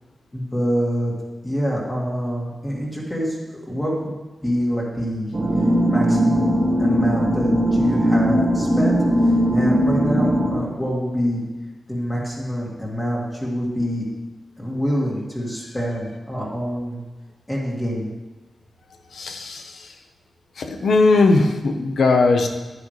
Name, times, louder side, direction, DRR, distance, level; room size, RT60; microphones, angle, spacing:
voice 1, 0.3-1.1 1.4-3.4 3.6-4.1 4.4-5.3 5.8-6.5 6.8-9.0 9.5-11.4 11.9-14.1 14.6-17.0 17.5-18.1, equal, 15° left, -5 dB, 2.1 m, -25 dB
sound 1, 5.3-10.6, equal, 40° right, 1.4 m, -19 dB
voice 2, 19.1-19.6 20.6-22.5, left 3 dB, 70° left, 5 dB, 1.0 m, -18 dB
11.0 x 9.7 x 3.2 m, 1.2 s
wide cardioid pair, 135°, 0 cm